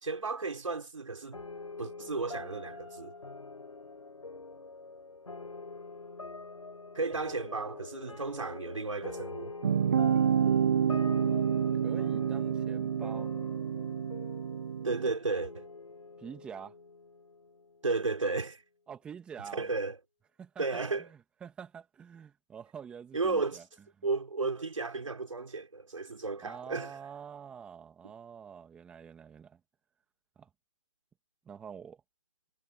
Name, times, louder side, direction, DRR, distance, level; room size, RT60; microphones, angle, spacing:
voice 1, 0.0-1.4 1.8-3.1 6.9-9.5 14.8-15.7 17.8-18.6 19.5-20.0 20.6-21.1 23.1-23.6 24.0-27.0, right 3 dB, 75° right, 4.2 m, -33 dB
sound 1, 1.3-18.1, left 3 dB, 85° left, 5.1 m, -45 dB
sound 2, 9.6-15.1, right 8 dB, 30° right, 0.5 m, -28 dB
voice 2, 11.8-13.3 16.2-16.8 18.9-19.7 20.4-20.6 21.0-23.6 24.0-24.1 26.4-29.6 30.4-30.5 31.5-32.0, right 7 dB, 5° right, 2.0 m, -46 dB
figure-of-eight pair, 160°, 16 cm